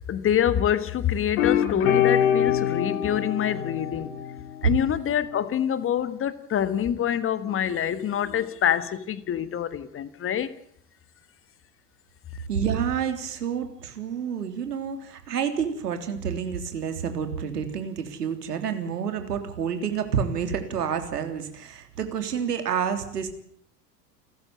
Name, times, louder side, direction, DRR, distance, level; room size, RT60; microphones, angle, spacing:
voice 1, 0.1-4.1 4.6-10.5, left 9 dB, 25° left, 1.5 m, -26 dB
sound 1, 1.4-4.8, left 9 dB, 55° left, 2.9 m, -24 dB
voice 2, 12.5-23.3, right 7 dB, 70° right, 3.5 m, -28 dB
29.5 x 14.0 x 8.6 m
figure-of-eight pair, 85°, 49 cm